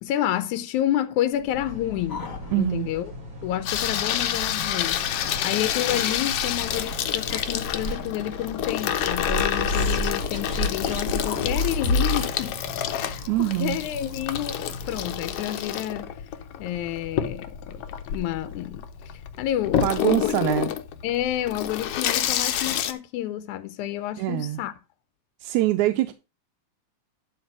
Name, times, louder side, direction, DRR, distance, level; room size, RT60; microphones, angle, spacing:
voice 1, 0.0-3.1 3.4-5.0 5.4-12.6 12.9-16.1 16.6-20.3 20.6-20.7 21.0-24.7, left 12 dB, 90° left, 2.1 m, -29 dB
sound 1, 1.4-3.0 3.3-3.4 3.8-3.9 4.5-5.4 5.9-6.9 7.3-8.0 9.0-12.3, left 1 dB, 35° left, 1.8 m, -30 dB
sound 2, 1.5-15.4, left 1 dB, 40° right, 4.8 m, -40 dB
voice 2, 2.5-2.9 13.3-13.8 19.7-20.7 24.2-24.6 25.4-26.1, right 15 dB, 85° right, 2.0 m, -24 dB
Water tap faucet / Sink (filling or washing), 3.7-22.9, left 10 dB, 70° left, 1.5 m, -29 dB
11.5 x 4.1 x 6.0 m
omnidirectional pair, 3.3 m